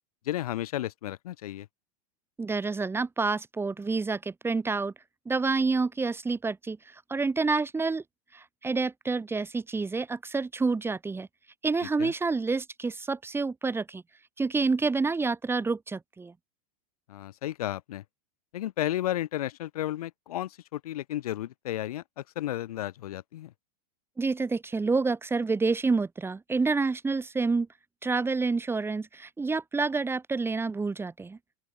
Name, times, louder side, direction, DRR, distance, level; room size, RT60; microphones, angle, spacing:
voice 1, 0.2-1.7 12.0-12.1 17.1-18.0 18.5-23.5, left 13 dB, 75° left, 2.6 m, -33 dB
voice 2, 2.4-4.9 5.2-8.0 8.3-11.3 11.6-14.0 14.4-16.3 24.2-27.7 28.0-31.4, right 4 dB, 10° right, 1.6 m, -28 dB
open air
hypercardioid pair, 115°, 19 cm